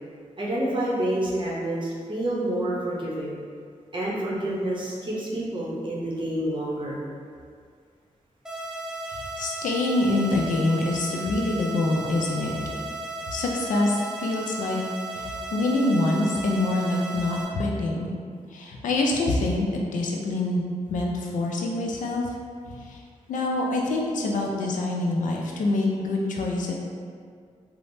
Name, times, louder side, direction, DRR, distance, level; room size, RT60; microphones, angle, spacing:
voice 1, 0.4-3.4 3.9-7.0, right 1 dB, 40° right, -6 dB, 0.7 m, -28 dB
sound 1, 8.4-17.4, right 2 dB, 5° right, 0.5 m, -35 dB
voice 2, 9.4-12.6 13.3-14.8 15.1-18.1 18.5-19.7 19.9-20.6 20.9-22.3 22.9-23.0 23.3-26.7, left 2 dB, 85° left, -1 dB, 0.4 m, -25 dB
3.2 x 2.0 x 2.6 m, 2.1 s
cardioid pair, 65°, 13 cm